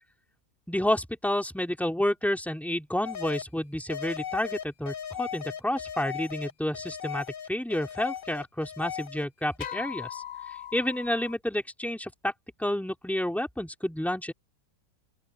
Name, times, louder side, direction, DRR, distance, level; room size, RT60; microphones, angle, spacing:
voice 1, 0.7-10.2 10.5-12.3 12.6-14.3, left 1 dB, ahead, 2.6 m, -30 dB
sound 1, 3.0-3.4 3.9-9.2 9.6-11.3, left 9 dB, 50° left, 0.7 m, -38 dB
open air
omnidirectional pair, 1.7 m